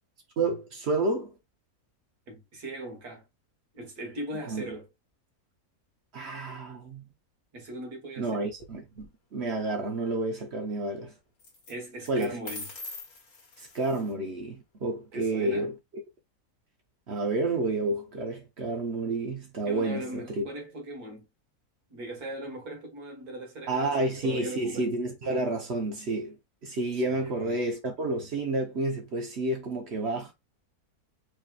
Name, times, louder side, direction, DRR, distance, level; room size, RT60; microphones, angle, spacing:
voice 1, 0.4-1.3 4.5-4.6 6.1-7.0 8.2-11.1 12.1-12.3 13.6-15.7 17.1-20.4 23.7-26.4 26.6-30.3, right 2 dB, 50° right, 1.0 m, -30 dB
voice 2, 2.3-3.2 3.7-4.9 7.5-8.5 11.7-12.7 15.1-15.7 19.7-21.3 21.9-24.9 26.9-27.6, right 1 dB, 75° right, 2.1 m, -39 dB
sound 1, 8.5-9.1 11.4-11.7 12.1-14.1, left 2 dB, 70° left, 1.8 m, -43 dB
4.7 x 3.1 x 2.3 m
omnidirectional pair, 1.6 m